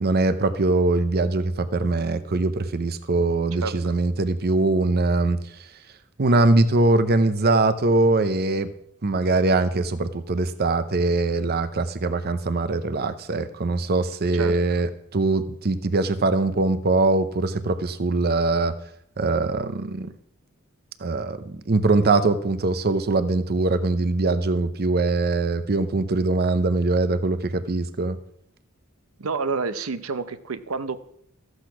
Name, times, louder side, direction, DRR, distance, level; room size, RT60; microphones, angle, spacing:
voice 1, 0.0-5.4 6.2-8.7 9.0-18.7 19.2-20.1 21.0-28.2, right 2 dB, 50° right, 12 dB, 0.7 m, -22 dB
voice 2, 29.2-31.0, right 4 dB, 80° right, 12 dB, 0.7 m, -28 dB
14.0 x 8.0 x 6.0 m, 0.72 s
head